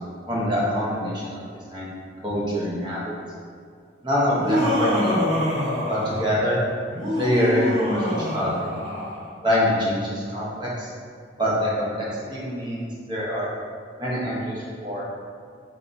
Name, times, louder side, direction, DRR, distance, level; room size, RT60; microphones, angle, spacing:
voice 1, 0.3-1.4 1.7-2.0 2.2-3.1 4.0-5.3 5.9-6.6 7.1-8.7 9.4-10.9 11.4-13.5 14.0-15.1, equal, 25° right, -6 dB, 0.7 m, -25 dB
Laughter, 4.3-6.4 6.9-9.2, equal, 65° right, 1.4 m, -25 dB
3.9 x 3.4 x 2.5 m, 2.2 s
head